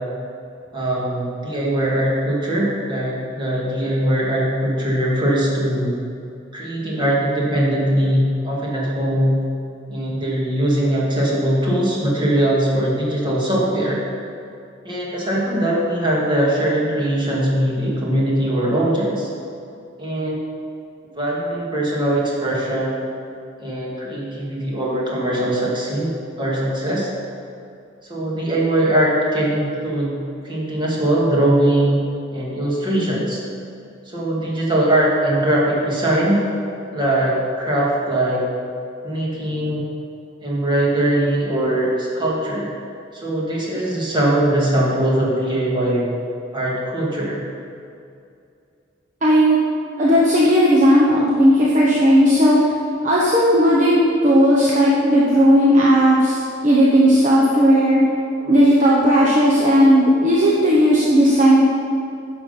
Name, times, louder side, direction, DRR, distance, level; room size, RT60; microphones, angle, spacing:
voice 1, 0.7-6.0 6.5-9.4 9.9-14.0 14.8-19.3 20.0-20.4 21.2-23.0 23.6-26.1 26.4-27.1 28.1-30.2 30.4-32.0 32.3-33.4 34.1-36.4 36.9-38.5 39.0-39.8 40.4-42.7 43.1-46.1 46.5-47.4 58.4-58.6, right 1 dB, 25° right, -5 dB, 2.3 m, -21 dB
voice 2, 49.2-49.6 50.0-52.6 53.0-56.4 56.6-58.0 58.5-61.7, equal, 40° right, -5 dB, 1.1 m, -15 dB
11.0 x 6.3 x 5.6 m, 2.5 s
head